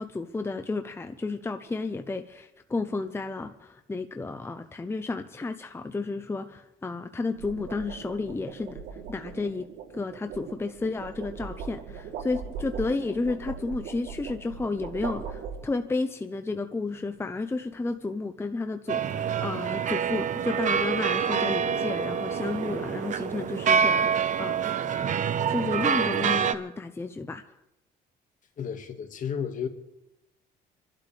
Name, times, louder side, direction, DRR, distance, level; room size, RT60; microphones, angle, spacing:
voice 1, 0.0-8.8 9.1-9.7 9.9-24.7 25.5-27.4, left 3 dB, 15° left, 0.7 m, -32 dB
sound 1, 1.7-2.0 7.1-16.0, right 6 dB, 85° right, 3.3 m, -40 dB
sound 2, 18.9-26.5, right 7 dB, 45° right, 1.0 m, -26 dB
voice 2, 28.6-29.7, left 7 dB, 50° left, 1.9 m, -32 dB
28.5 x 12.0 x 3.4 m
cardioid pair, 110°, 17 cm